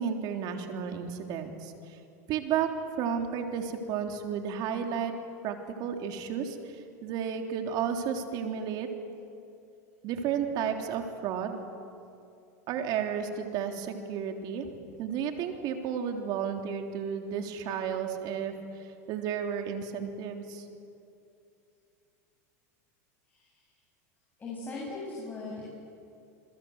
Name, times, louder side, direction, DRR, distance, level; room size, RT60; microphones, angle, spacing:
voice 1, 0.0-2.0 2.3-2.7 3.0-5.1 5.4-8.9 10.0-11.6 12.7-20.7, right 7 dB, 50° right, 4 dB, 3.5 m, -33 dB
voice 2, 23.3-23.7 24.4-25.6, left 3 dB, 20° left, -3 dB, 7.9 m, -39 dB
28.5 x 21.5 x 8.1 m, 2.6 s
supercardioid pair, 115°, 9 cm